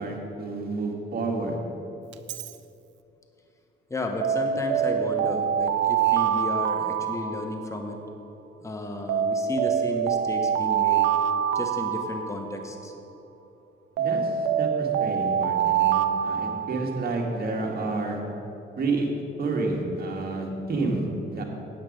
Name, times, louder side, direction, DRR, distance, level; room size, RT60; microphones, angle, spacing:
voice 1, 0.0-1.6 14.0-18.2 18.8-19.1 19.4-21.4, right 3 dB, 50° right, 1 dB, 1.8 m, -29 dB
Alarm, 2.1-2.5 4.2-8.0 9.1-12.9 14.0-17.2, right 8 dB, 70° right, 0.5 m, -25 dB
voice 2, 3.9-8.0 8.6-11.0 11.5-12.9, left 1 dB, 15° left, 3 dB, 1.1 m, -33 dB
8.9 x 8.4 x 5.2 m, 2.8 s
cardioid pair, 90°, 20 cm